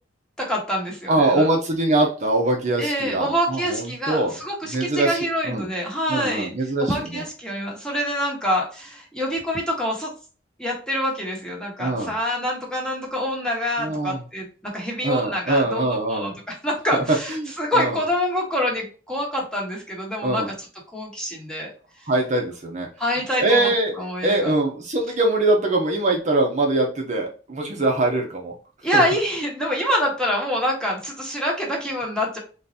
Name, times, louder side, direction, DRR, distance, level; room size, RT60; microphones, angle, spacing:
voice 1, 0.4-1.5 2.8-6.5 6.8-10.1 10.6-16.3 16.6-20.4 20.9-21.7 23.0-23.7 24.0-24.5 28.8-32.4, equal, 5° left, -2 dB, 1.2 m, -26 dB
voice 2, 1.1-4.4 4.7-5.7 6.1-7.2 11.8-12.1 13.8-14.2 15.0-16.3 16.9-17.0 17.3-18.0 20.2-20.5 22.1-22.9 23.4-28.5 28.9-29.0, right 2 dB, 40° right, 1 dB, 0.8 m, -23 dB
3.8 x 3.1 x 2.7 m, 0.37 s
head